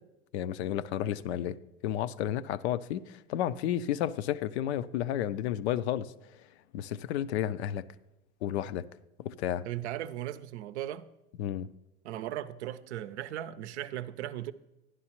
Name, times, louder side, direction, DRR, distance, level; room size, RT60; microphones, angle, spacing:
voice 1, 0.3-1.6 1.8-6.1 6.7-7.8 8.4-8.9 9.2-9.6 11.4-11.7, left 11 dB, 70° left, 0.5 m, -32 dB
voice 2, 9.6-11.1 12.0-14.5, right 12 dB, 75° right, 0.6 m, -37 dB
11.0 x 11.0 x 2.9 m
hypercardioid pair, 85°, 34 cm